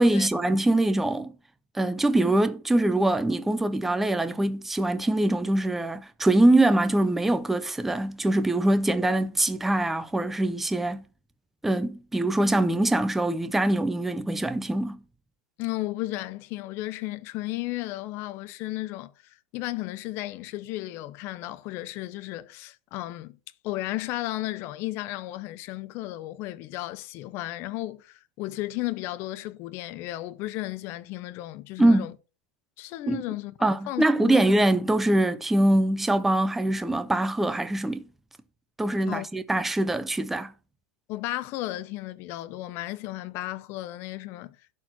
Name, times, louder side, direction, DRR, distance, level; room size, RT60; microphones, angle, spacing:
voice 1, 0.0-1.3 1.7-11.0 11.6-15.0 31.8-32.1 33.1-33.2 33.6-38.0 38.8-40.5, right 1 dB, 5° right, 0.5 m, -23 dB
voice 2, 15.6-23.4 23.6-32.1 32.8-34.4 39.1-39.3 41.1-44.6, left 17 dB, 35° left, 0.7 m, -34 dB
12.0 x 4.5 x 6.0 m
supercardioid pair, 160°, 7 cm